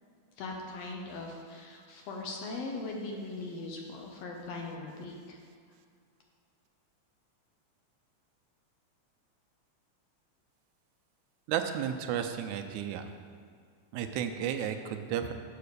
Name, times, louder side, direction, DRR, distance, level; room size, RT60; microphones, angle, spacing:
voice 1, 0.4-5.4, left 3 dB, 70° left, 1 dB, 1.8 m, -40 dB
voice 2, 11.5-13.1 13.9-15.3, right 9 dB, 80° right, 7 dB, 1.9 m, -33 dB
7.7 x 5.5 x 6.7 m, 2.1 s
omnidirectional pair, 3.4 m